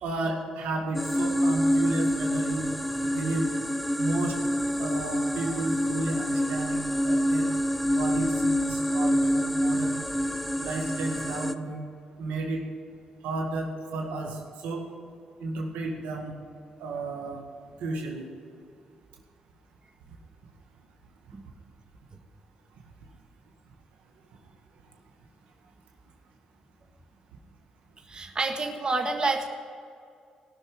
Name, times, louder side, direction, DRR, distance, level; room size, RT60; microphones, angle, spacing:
voice 1, 0.0-2.7 3.0-3.5 4.0-4.4 4.8-7.5 7.9-10.0 10.6-11.8 12.2-12.6 13.2-14.8 15.4-16.3 16.8-17.4 17.8-18.3, right 2 dB, 85° right, 1 dB, 1.9 m, -32 dB
sound 1, 0.9-11.5, equal, ahead, 0.8 m, -27 dB
voice 2, 28.1-29.5, right 3 dB, 40° right, 4 dB, 1.7 m, -28 dB
18.0 x 6.4 x 9.3 m, 2.3 s
supercardioid pair, 55°, 2 cm